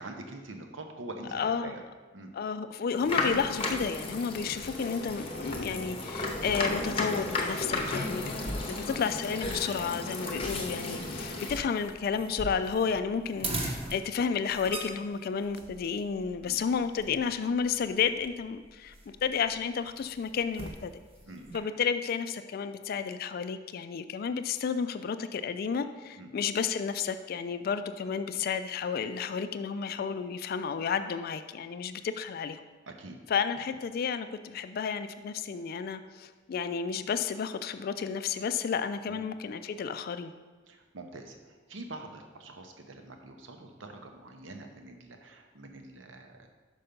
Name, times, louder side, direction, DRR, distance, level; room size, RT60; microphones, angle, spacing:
voice 1, 0.0-1.8 2.1-2.3 4.5-4.6 8.4-8.8 10.3-10.5 11.0-11.1 16.4-16.6 21.3-21.5 26.2-26.3 32.9-33.2 39.1-39.2 40.7-41.4 41.7-46.5, right 2 dB, 80° right, 4 dB, 0.8 m, -45 dB
voice 2, 1.3-1.8 2.3-8.3 8.7-18.9 19.2-20.9 21.5-32.6 33.3-40.3, left 6 dB, 50° left, 10 dB, 0.3 m, -32 dB
sound 1, 3.0-11.6, left 2 dB, 30° left, 0.7 m, -34 dB
sound 2, 3.1-21.6, right 1 dB, 30° right, 0.9 m, -43 dB
5.7 x 5.3 x 5.2 m, 1.4 s
head